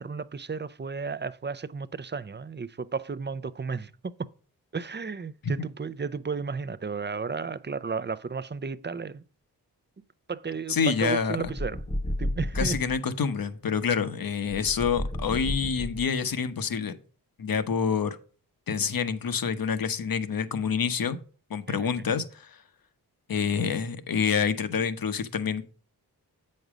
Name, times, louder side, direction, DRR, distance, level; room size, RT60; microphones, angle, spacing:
voice 1, 0.0-4.1 4.7-9.2 10.3-11.8 12.2-12.8 21.7-21.8, right 5 dB, 25° right, 0.6 m, -33 dB
voice 2, 10.7-11.6 12.5-17.0 17.4-18.2 18.7-21.2 21.5-22.6 23.3-25.8, left 6 dB, 60° left, 1.0 m, -27 dB
sound 1, 11.4-13.0 14.5-16.3, left 1 dB, 15° left, 1.1 m, -32 dB
7.9 x 5.4 x 4.9 m
cardioid pair, 50°, 39 cm